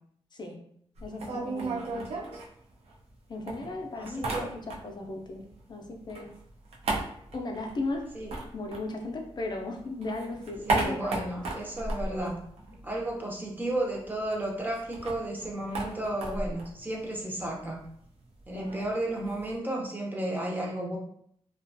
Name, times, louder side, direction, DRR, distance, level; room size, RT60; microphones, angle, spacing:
voice 1, 1.0-2.1 3.3-5.4 5.7-6.3 7.3-8.0 8.5-11.4 18.5-18.9, left 2 dB, 45° left, 2 dB, 0.5 m, -36 dB
sound 1, 1.0-3.1 3.5-5.1 5.4-9.5 9.8-13.1 13.4-13.5 13.8-19.6, right 2 dB, 75° right, 0.5 m, -35 dB
voice 2, 4.0-4.5 8.1-8.3 10.7-12.4 12.8-17.8 18.5-21.0, right 1 dB, 15° right, -1 dB, 0.6 m, -33 dB
2.4 x 2.2 x 2.5 m, 0.67 s
wide cardioid pair, 110°, 11 cm